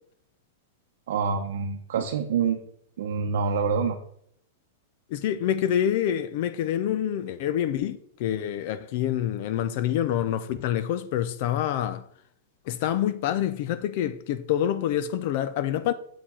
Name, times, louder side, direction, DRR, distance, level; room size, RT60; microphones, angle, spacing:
voice 1, 1.1-2.6 3.0-4.0, right 6 dB, 70° right, 0.7 m, -26 dB
voice 2, 5.1-12.0 12.7-15.9, left 10 dB, 50° left, 0.4 m, -27 dB
7.4 x 4.5 x 4.3 m
supercardioid pair, 160°, 0 cm